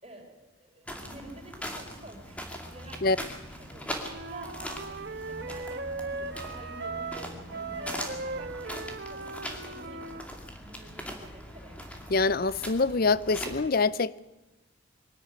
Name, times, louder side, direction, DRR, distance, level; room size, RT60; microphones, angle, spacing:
voice 1, 0.0-8.7 9.1-10.3 10.6-12.1, right 1 dB, 30° right, 4.5 m, -50 dB
sound 1, 0.9-13.7, equal, 5° left, 2.5 m, -41 dB
Wind instrument woodwind instrument, 4.0-10.3, right 3 dB, 50° right, 1.3 m, -38 dB
voice 2, 12.1-14.2, left 3 dB, 45° left, 0.6 m, -25 dB
23.5 x 12.5 x 9.6 m
head